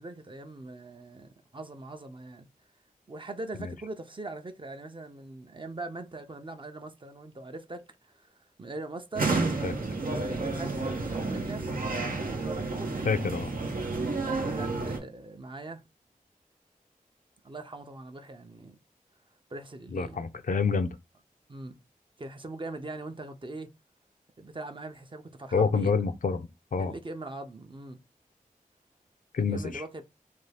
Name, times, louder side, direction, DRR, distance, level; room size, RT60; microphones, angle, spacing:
voice 1, 0.0-2.5 3.1-9.3 10.1-11.6 12.3-13.1 13.9-15.9 17.4-18.8 19.5-20.3 21.5-21.8 22.2-23.7 24.4-26.1 26.8-28.0 29.5-30.0, right 2 dB, 35° right, 0.5 m, -41 dB
sound 1, 9.1-15.0, right 3 dB, 80° right, 0.7 m, -30 dB
voice 2, 13.0-13.5 19.9-21.0 25.5-26.9 29.3-29.8, left 5 dB, 65° left, 0.4 m, -27 dB
2.6 x 2.3 x 3.3 m
wide cardioid pair, 65°, 15 cm